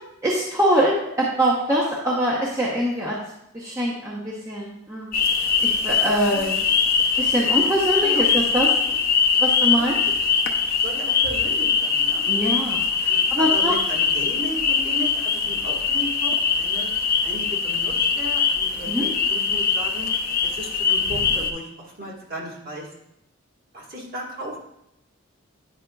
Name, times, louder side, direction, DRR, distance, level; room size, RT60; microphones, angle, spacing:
voice 1, 0.2-3.2 3.5-5.1 5.6-6.5 7.2-9.0 9.4-10.0 12.3-13.8 18.9-19.1, equal, 15° right, -5 dB, 0.7 m, -23 dB
sound 1, 5.1-21.5, left 5 dB, 40° left, 0.5 m, -22 dB
voice 2, 6.3-6.7 8.0-8.2 9.6-10.0 10.8-12.2 13.1-16.9 17.2-20.1 20.5-22.9 23.7-24.6, right 1 dB, 40° right, -3 dB, 1.4 m, -35 dB
9.0 x 4.9 x 2.3 m, 0.82 s
head